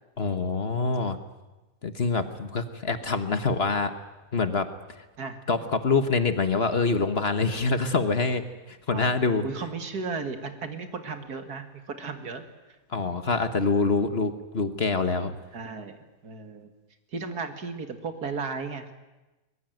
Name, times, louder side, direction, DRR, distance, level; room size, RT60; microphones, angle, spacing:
voice 1, 0.2-1.2 1.8-3.9 4.3-4.7 5.5-8.4 8.7-9.5 12.9-15.3, left 4 dB, 40° left, 9 dB, 1.5 m, -25 dB
voice 2, 8.9-12.4 13.0-13.2 15.5-16.0 16.2-16.7 17.1-18.9, right 4 dB, 80° right, 8 dB, 2.5 m, -35 dB
23.0 x 21.0 x 9.3 m, 1.1 s
omnidirectional pair, 1.6 m